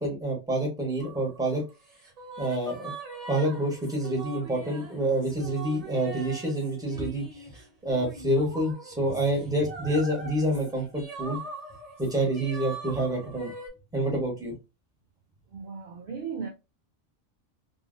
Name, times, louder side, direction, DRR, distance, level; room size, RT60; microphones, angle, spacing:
voice 1, 0.0-1.6 2.4-2.9 3.3-7.2 7.8-11.4 12.0-13.5 13.9-14.5, right 1 dB, 5° right, 1.1 m, -27 dB
sound 1, 1.0-13.7, right 3 dB, 30° right, 1.2 m, -42 dB
voice 2, 15.5-16.5, right 6 dB, 60° right, 0.7 m, -36 dB
2.7 x 2.7 x 2.5 m
omnidirectional pair, 1.2 m